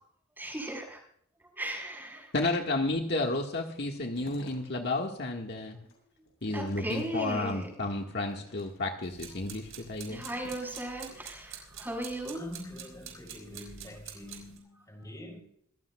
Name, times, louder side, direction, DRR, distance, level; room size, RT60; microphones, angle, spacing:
voice 1, 0.4-1.0 1.6-2.3 5.7-5.9 6.5-7.7 10.1-12.4, right 1 dB, 10° right, 4.4 m, -37 dB
voice 2, 2.3-5.8 6.4-10.3, left 2 dB, 50° left, 1.6 m, -32 dB
sound 1, 3.7-4.9 5.4-7.7 8.2-9.1 9.6-10.9, left 1 dB, 70° left, 7.8 m, -54 dB
sound 2, 9.0-14.6, right 8 dB, 65° right, 5.3 m, -47 dB
voice 3, 12.3-15.4, left 1 dB, 15° left, 3.9 m, -45 dB
26.5 x 16.0 x 2.3 m
head